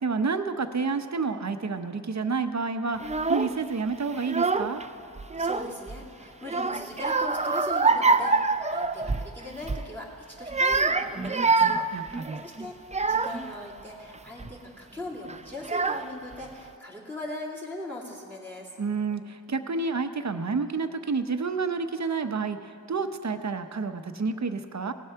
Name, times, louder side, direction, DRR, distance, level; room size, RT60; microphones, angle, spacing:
voice 1, 0.0-4.8 11.9-12.4 18.8-24.9, right 4 dB, 45° right, 9 dB, 0.8 m, -29 dB
Child speech kid speaking / Crying sobbing, 3.0-3.6 4.2-4.9 5.2-6.0 6.5-9.3 9.6-9.9 10.4-13.5 14.1-14.5 15.3-15.4 15.6-16.4, right 4 dB, 20° right, 0.5 m, -25 dB
voice 2, 5.4-11.7 12.0-12.7 13.1-18.7, left 1 dB, 5° left, -3 dB, 2.5 m, -40 dB
18.0 x 7.9 x 5.7 m, 2.7 s
cardioid pair, 50°, 38 cm